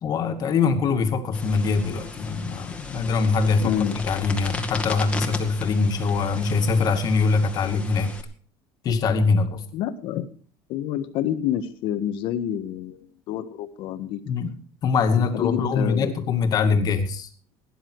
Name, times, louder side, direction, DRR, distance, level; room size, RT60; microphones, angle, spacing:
voice 1, 0.0-8.1 8.8-9.6 14.3-14.5 14.8-17.3, left 4 dB, 45° left, 6 dB, 2.2 m, -23 dB
sound 1, 1.3-8.2, left 3 dB, 15° left, 2.1 m, -36 dB
voice 2, 3.6-3.9 9.7-10.3 10.7-13.0 13.3-14.2 15.3-16.1, left 10 dB, 70° left, 10 dB, 1.4 m, -27 dB
17.5 x 10.0 x 4.8 m, 0.43 s
cardioid pair, 135°, 9 cm